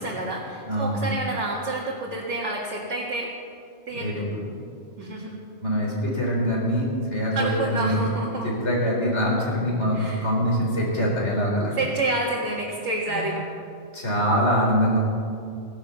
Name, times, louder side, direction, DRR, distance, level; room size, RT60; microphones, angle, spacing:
voice 1, 0.0-3.3 3.9-4.3 5.0-5.4 7.3-8.5 9.9-10.2 11.8-13.4, right 2 dB, 80° right, -4 dB, 2.2 m, -29 dB
voice 2, 0.6-1.1 3.9-4.6 5.6-8.0 8.4-11.7 13.1-13.2 13.9-15.0, equal, 75° left, -3 dB, 4.3 m, -24 dB
16.0 x 11.5 x 6.9 m, 2.4 s
omnidirectional pair, 1.2 m